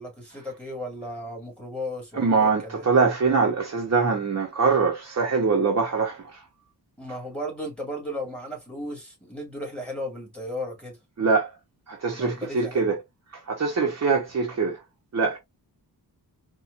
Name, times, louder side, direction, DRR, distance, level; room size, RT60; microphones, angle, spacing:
voice 1, 0.0-2.8 7.0-11.0 12.2-12.9 14.1-14.2, left 1 dB, 5° left, 1.8 m, -35 dB
voice 2, 2.2-6.4 11.2-11.5 11.9-13.0 13.5-14.8 15.1-15.4, right 4 dB, 40° right, 0.9 m, -23 dB
4.2 x 2.3 x 2.5 m
wide cardioid pair, 145°, 40 cm